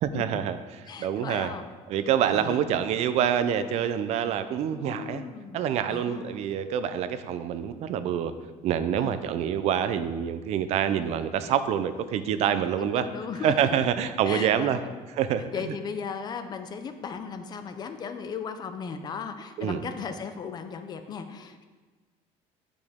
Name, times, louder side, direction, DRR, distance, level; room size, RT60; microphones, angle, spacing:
voice 1, 0.0-1.5 1.9-5.2 5.5-8.3 8.6-13.1 13.4-14.8 15.1-15.8 19.6-19.8, right 9 dB, 55° right, 12 dB, 0.4 m, -26 dB
voice 2, 0.9-1.7 2.3-2.7 4.7-5.6 5.9-6.4 9.0-9.3 12.8-13.9 14.2-15.0 15.5-21.6, left 6 dB, 30° left, 8 dB, 0.5 m, -36 dB
9.8 x 5.0 x 3.5 m, 1.3 s
cardioid pair, 155°, 14 cm